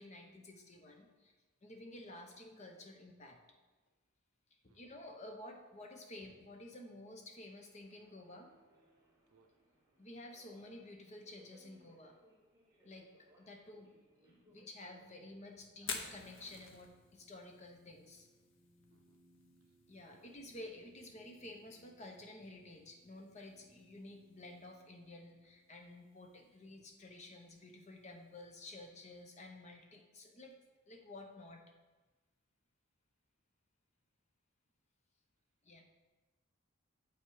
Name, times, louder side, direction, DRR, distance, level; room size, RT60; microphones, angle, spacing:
voice 1, 0.0-1.3 1.6-3.4 4.7-8.5 10.0-12.2 12.8-13.9 14.2-18.3 19.9-30.5 30.9-31.6 35.6-35.8, left 1 dB, 30° left, 3 dB, 0.8 m, -52 dB
voice 2, 4.6-5.0 9.3-9.5 18.9-19.2 19.6-19.8 20.1-20.3, right 3 dB, 80° right, 7 dB, 0.7 m, -71 dB
Subway metro underground, 7.8-17.5, right 1 dB, 15° right, 1.4 m, -69 dB
sound 1, 14.0-27.4, right 1 dB, 40° right, 0.6 m, -71 dB
Fire, 15.7-29.6, left 5 dB, 60° left, 0.8 m, -53 dB
7.4 x 5.7 x 4.8 m, 1.2 s
head